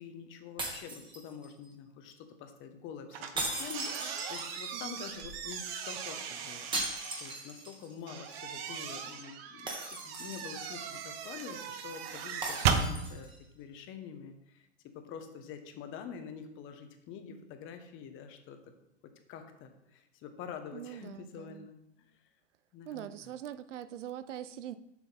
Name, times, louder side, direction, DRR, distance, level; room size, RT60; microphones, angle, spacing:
voice 1, 0.0-18.6 19.3-21.8 22.7-23.3, left 7 dB, 35° left, 7 dB, 1.0 m, -47 dB
sound 1, 0.6-1.7 3.4-4.9 6.7-7.9 8.3-8.4 9.7-10.7 12.4-13.4, right 2 dB, 15° right, 1.4 m, -38 dB
sound 2, 3.1-7.4 8.1-12.9, right 7 dB, 55° right, 1.0 m, -37 dB
voice 2, 4.7-5.0 20.7-21.7 22.9-24.8, right 11 dB, 80° right, 14 dB, 0.6 m, -43 dB
7.2 x 5.6 x 4.1 m, 0.82 s
hypercardioid pair, 120°, 36 cm